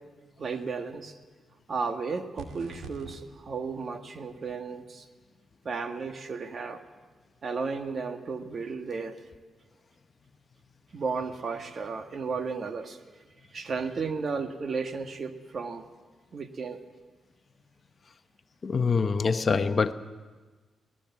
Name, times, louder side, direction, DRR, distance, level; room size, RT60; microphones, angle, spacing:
voice 1, 0.4-1.2 1.7-5.1 5.7-6.8 7.4-9.2 10.9-13.0 13.5-15.9 16.3-16.8, right 4 dB, 55° right, 1.8 m, -34 dB
sound 1, 2.4-3.2, right 4 dB, 80° right, 2.6 m, -43 dB
voice 2, 18.6-19.9, left 5 dB, 50° left, 0.9 m, -24 dB
22.5 x 18.5 x 7.3 m
supercardioid pair, 55°, 0 cm